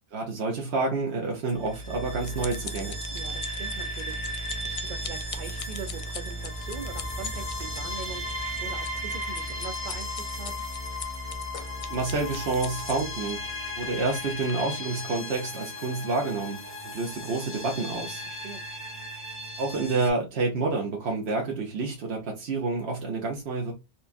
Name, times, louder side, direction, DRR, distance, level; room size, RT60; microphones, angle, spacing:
voice 1, 0.1-3.0 11.9-13.4 13.8-16.6 16.8-18.2 19.6-23.7, right 3 dB, 80° right, 1.2 m, -28 dB
sound 1, 1.5-20.1, equal, 10° left, 1.2 m, -35 dB
sound 2, 1.7-13.3 14.0-14.2 14.5-14.6, left 7 dB, 55° left, 0.4 m, -41 dB
voice 2, 3.1-4.2 4.6-10.6 18.2-18.6, right 6 dB, 55° right, 0.6 m, -42 dB
4.4 x 2.3 x 2.5 m
omnidirectional pair, 1.1 m